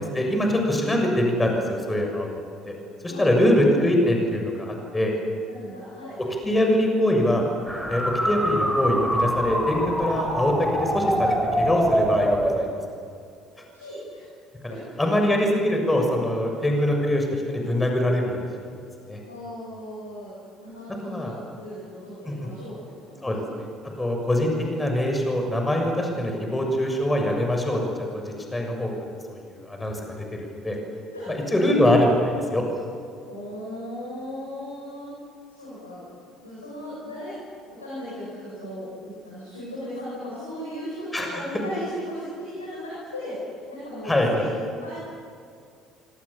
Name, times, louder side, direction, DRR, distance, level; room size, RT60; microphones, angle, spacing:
voice 1, 0.0-2.3 2.7-2.8 3.0-5.1 6.4-7.4 7.9-12.8 14.6-18.5 19.1-19.2 21.0-21.4 22.3-22.4 23.2-23.7 24.0-28.9 29.3-30.0 30.6-30.8 31.3-32.6 41.1-41.4 44.0-44.5, left 1 dB, 15° left, 2 dB, 6.8 m, -23 dB
voice 2, 3.0-3.3 5.5-6.6 13.7-14.2 14.6-15.1 19.3-23.5 31.1-31.6 33.2-35.1 35.5-36.1 36.4-37.4 37.6-43.4 43.7-45.0, equal, 85° left, -7 dB, 7.6 m, -37 dB
sound 1, 7.7-12.6, equal, 5° right, 4.2 m, -24 dB
27.0 x 26.0 x 7.1 m, 2.4 s
figure-of-eight pair, 55°, 0 cm